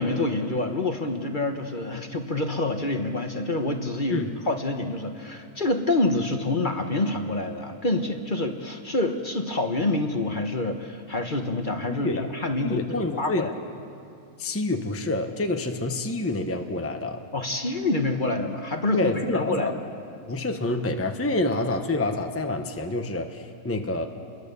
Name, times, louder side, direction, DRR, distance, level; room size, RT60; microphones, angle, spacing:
voice 1, 0.0-13.5 17.3-19.8, left 2 dB, 35° left, 5 dB, 1.3 m, -27 dB
voice 2, 11.8-12.3 12.6-13.4 14.4-17.2 18.9-19.7 20.3-24.1, left 2 dB, 10° left, 5 dB, 1.0 m, -27 dB
29.0 x 22.0 x 6.9 m, 2.5 s
omnidirectional pair, 1.6 m